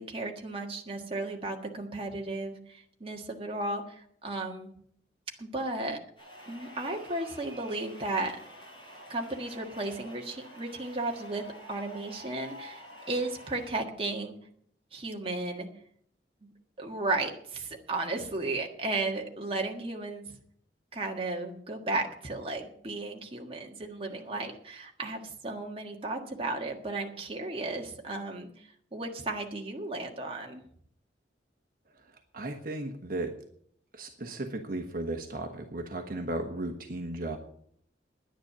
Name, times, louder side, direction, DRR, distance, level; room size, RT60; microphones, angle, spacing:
voice 1, 0.0-4.7 5.4-6.0 6.5-8.3 9.1-14.4 14.9-15.7 16.4-16.5 16.8-20.3 20.9-30.6, right 2 dB, 30° right, 1 dB, 1.6 m, -34 dB
sound 1, 6.2-13.7, equal, 30° left, 5.8 m, -49 dB
voice 2, 31.9-33.4 33.9-37.4, right 2 dB, 55° right, 3 dB, 1.3 m, -35 dB
10.5 x 10.0 x 6.8 m, 0.65 s
head